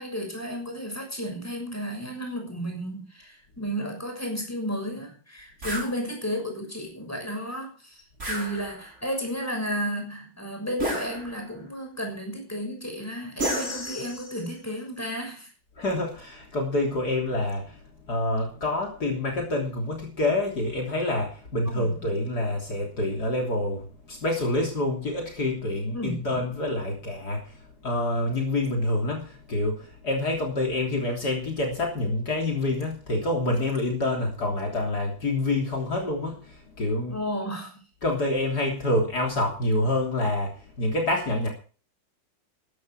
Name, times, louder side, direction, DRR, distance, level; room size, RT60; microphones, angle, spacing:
voice 1, 0.0-15.5 21.6-22.1 25.9-26.3 37.1-37.7, equal, 10° left, 2 dB, 6.4 m, -33 dB
sound 1, 5.6-5.9 8.2-9.0 10.8-11.6 13.4-14.5, right 1 dB, 40° right, 6.0 m, -32 dB
voice 2, 15.8-37.2 38.0-41.5, left 1 dB, 55° left, 1 dB, 3.9 m, -27 dB
15.0 x 12.5 x 4.9 m, 0.38 s
omnidirectional pair, 2.0 m